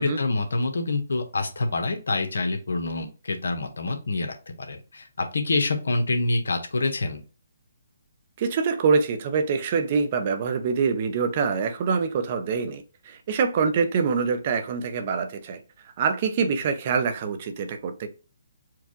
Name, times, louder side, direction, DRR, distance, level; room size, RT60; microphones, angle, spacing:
voice 1, 0.0-7.2, left 3 dB, 80° left, 1.1 m, -26 dB
voice 2, 8.4-15.6 16.0-18.1, right 5 dB, 40° right, 0.7 m, -25 dB
4.6 x 2.4 x 3.8 m
hypercardioid pair, 150°, 0 cm